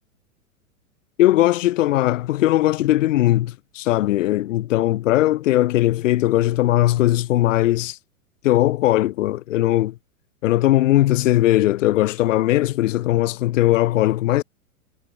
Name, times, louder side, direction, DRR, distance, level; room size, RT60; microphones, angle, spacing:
voice 1, 1.2-8.0 8.4-9.9 10.4-14.4, left 15 dB, 65° left, 0.5 m, -19 dB
figure-of-eight pair, 105°, 42 cm